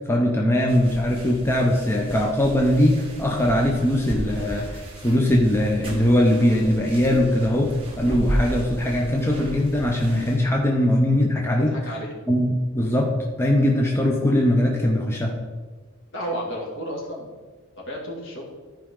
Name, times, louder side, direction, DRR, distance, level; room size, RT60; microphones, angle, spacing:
voice 1, 0.1-11.8 12.3-15.3, left 1 dB, 10° left, 0 dB, 0.7 m, -21 dB
sound 1, 0.7-10.4, right 1 dB, 25° right, 1.9 m, -34 dB
voice 2, 11.6-12.1 16.1-17.3 17.9-18.5, equal, 60° left, -3 dB, 2.3 m, -32 dB
13.5 x 5.1 x 3.7 m, 1.4 s
head